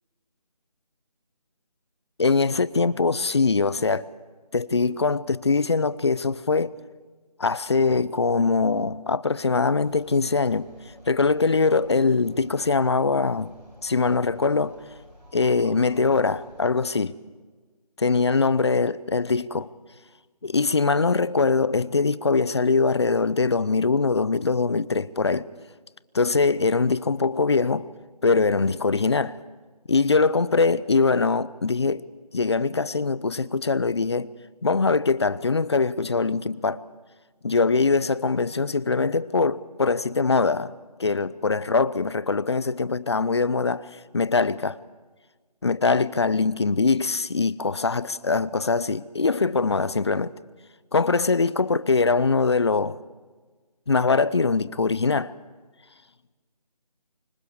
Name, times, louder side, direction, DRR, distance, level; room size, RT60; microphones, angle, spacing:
voice 1, 2.2-4.0 4.5-6.7 7.4-10.7 11.1-13.5 13.8-14.8 15.3-17.1 18.0-19.7 20.4-25.5 26.1-27.9 28.2-29.4 29.9-32.0 32.3-34.3 34.6-36.8 37.4-40.7 41.0-43.9 44.1-44.8 45.6-50.3 50.9-53.0 53.9-55.3, left 4 dB, 40° left, 0.7 m, -22 dB
sound 1, 9.7-16.7, equal, 10° right, 7.3 m, -51 dB
29.0 x 25.5 x 4.9 m
figure-of-eight pair, 165°, 21 cm